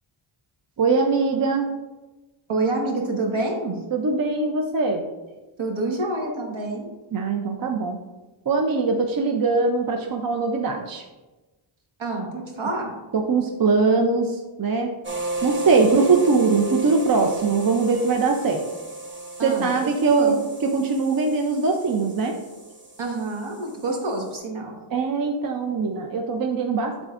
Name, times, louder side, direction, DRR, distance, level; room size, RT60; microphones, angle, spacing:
voice 1, 0.8-1.7 3.9-5.0 7.1-8.0 8.5-11.0 13.1-14.9 15.4-18.6 19.4-22.4 24.9-27.0, right 4 dB, 45° right, 3 dB, 0.6 m, -22 dB
voice 2, 2.5-3.8 5.6-6.9 12.0-12.9 19.4-19.9 20.2-20.4 23.0-24.8, right 2 dB, 70° right, 0 dB, 1.4 m, -27 dB
sound 1, 15.0-24.3, right 2 dB, 25° right, 1.0 m, -34 dB
11.0 x 3.7 x 2.5 m, 1.2 s
wide cardioid pair, 105°, 49 cm